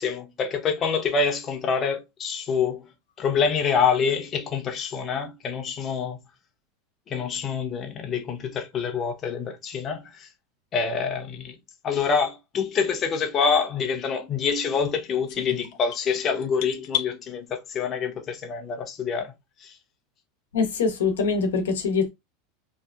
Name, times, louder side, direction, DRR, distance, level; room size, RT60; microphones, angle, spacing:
voice 1, 0.0-2.9 3.2-6.2 7.1-10.3 10.7-11.5 11.8-19.3 19.6-19.7, left 6 dB, 35° left, 0.8 m, -26 dB
sound 1, 15.3-17.1, left 12 dB, 60° left, 0.5 m, -32 dB
voice 2, 20.5-22.1, left 5 dB, 90° left, 0.9 m, -23 dB
2.7 x 2.3 x 2.3 m
supercardioid pair, 115°, 0 cm